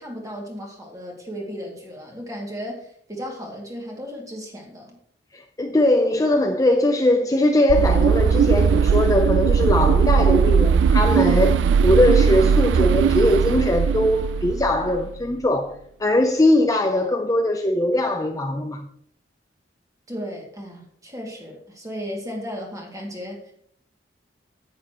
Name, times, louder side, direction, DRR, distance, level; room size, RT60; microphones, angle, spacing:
voice 1, 0.0-5.0 20.1-23.5, equal, 20° right, 2.4 m, -35 dB
voice 2, 5.3-11.6 11.8-18.8, left 1 dB, 20° left, 0.6 m, -20 dB
sound 1, 7.7-15.1, right 6 dB, 75° right, 0.3 m, -19 dB
10.0 x 8.7 x 3.0 m
head